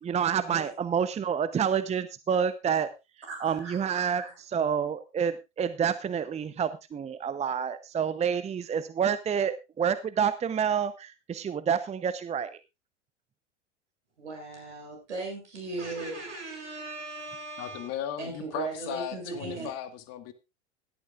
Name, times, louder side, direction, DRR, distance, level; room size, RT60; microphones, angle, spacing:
voice 1, 0.0-2.9 3.4-12.6, right 7 dB, 20° right, 13 dB, 0.8 m, -28 dB
voice 2, 3.3-4.3 14.2-17.9 18.2-19.7, right 3 dB, 75° right, 2 dB, 7.4 m, -38 dB
voice 3, 17.6-20.3, left 10 dB, 45° left, 11 dB, 1.9 m, -36 dB
17.5 x 12.0 x 2.5 m, 0.26 s
figure-of-eight pair, 80°, 35 cm